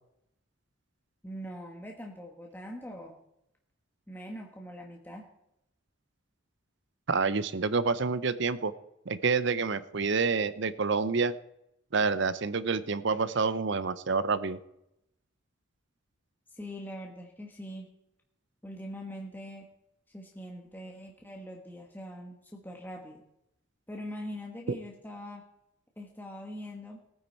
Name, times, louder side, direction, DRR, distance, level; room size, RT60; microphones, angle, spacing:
voice 1, 1.2-3.1 4.1-5.3 16.5-17.9 18.6-19.6 20.1-23.2 23.9-25.4 26.0-27.0, equal, 10° left, 0 dB, 1.3 m, -42 dB
voice 2, 7.1-8.7 9.1-11.3 11.9-14.6, right 4 dB, 60° right, 15 dB, 0.7 m, -28 dB
19.0 x 9.5 x 4.5 m, 0.82 s
head